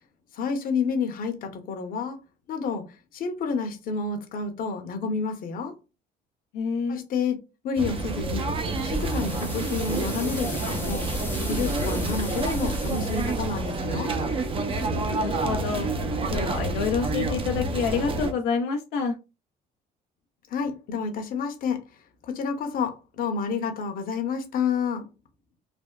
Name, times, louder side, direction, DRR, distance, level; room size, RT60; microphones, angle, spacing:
voice 1, 0.3-2.2 2.5-5.7 6.9-7.4 7.6-8.5 8.8-11.1 11.5-14.1 20.5-21.8 22.3-25.0, left 5 dB, 55° left, 0.8 m, -29 dB
voice 2, 6.5-7.0 15.0-15.9 16.3-19.1, left 5 dB, 90° left, 0.5 m, -28 dB
sound 1, 7.8-18.3, right 2 dB, 35° right, 0.5 m, -28 dB
sound 2, 8.6-13.6, left 2 dB, 10° left, 0.7 m, -40 dB
3.3 x 2.1 x 2.2 m
cardioid pair, 110°, 17 cm